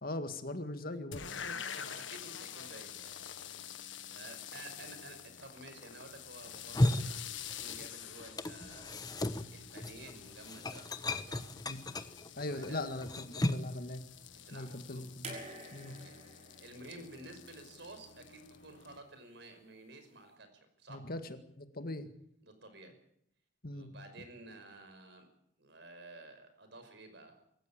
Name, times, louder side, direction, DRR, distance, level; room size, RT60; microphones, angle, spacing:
voice 1, 0.0-1.3 11.7-11.8 12.4-14.0 14.5-15.4 15.7-15.9 20.9-22.1 23.6-23.9, left 2 dB, 50° left, 9 dB, 1.9 m, -40 dB
sound 1, 1.1-19.0, left 8 dB, 85° left, 1.6 m, -47 dB
voice 2, 1.3-3.2 3.6-3.8 4.1-9.0 9.5-10.9 11.2-11.5 12.4-12.8 14.4-15.0 16.0-20.5 20.8-21.0 22.4-23.0 23.7-25.3 25.6-27.3, right 2 dB, 65° right, 8 dB, 5.6 m, -52 dB
sound 2, 6.5-8.0 8.2-13.8, left 1 dB, 20° left, 1.1 m, -35 dB
sound 3, 15.2-18.4 19.6-19.7, right 2 dB, 40° right, 6.0 m, -49 dB
25.5 x 14.5 x 8.7 m, 0.71 s
head